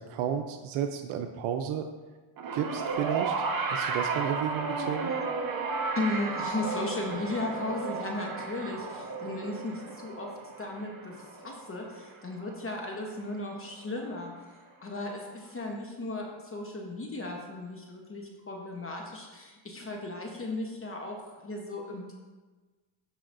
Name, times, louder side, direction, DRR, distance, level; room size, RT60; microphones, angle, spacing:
voice 1, 0.1-1.8 2.5-5.1, right 9 dB, 80° right, 5 dB, 0.7 m, -32 dB
sound 1, 2.4-12.8 13.8-13.9, right 4 dB, 45° right, 1.1 m, -34 dB
voice 2, 5.9-10.3 10.6-14.3 14.8-22.1, left 2 dB, 25° left, 0 dB, 1.0 m, -36 dB
13.0 x 4.9 x 2.6 m, 1.3 s
cardioid pair, 110°, 48 cm